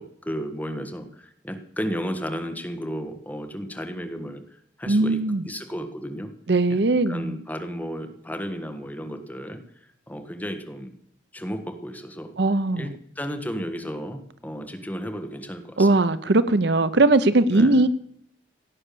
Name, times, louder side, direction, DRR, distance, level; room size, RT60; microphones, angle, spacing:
voice 1, 0.0-5.2 5.5-6.3 6.7-6.8 7.1-9.6 10.1-10.9 11.3-12.3 12.7-15.9 17.5-17.8, equal, 10° left, 6 dB, 1.5 m, -33 dB
voice 2, 4.9-5.4 6.5-7.4 12.4-12.9 15.8-17.9, right 2 dB, 60° right, 14 dB, 0.7 m, -19 dB
16.5 x 8.6 x 6.9 m, 0.69 s
head